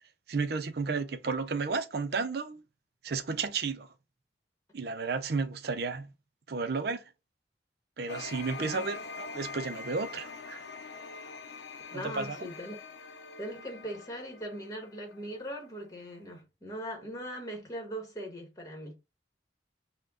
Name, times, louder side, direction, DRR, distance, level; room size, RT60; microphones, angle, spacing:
voice 1, 0.3-2.6 3.0-3.9 4.7-6.1 6.5-7.0 8.0-10.6 11.9-12.4, right 4 dB, 60° right, 0.5 m, -33 dB
sound 1, 8.1-15.7, left 4 dB, 85° left, 0.6 m, -44 dB
voice 2, 8.6-8.9 11.9-12.8 13.4-18.9, equal, 20° left, 1.3 m, -40 dB
5.4 x 2.2 x 3.7 m
head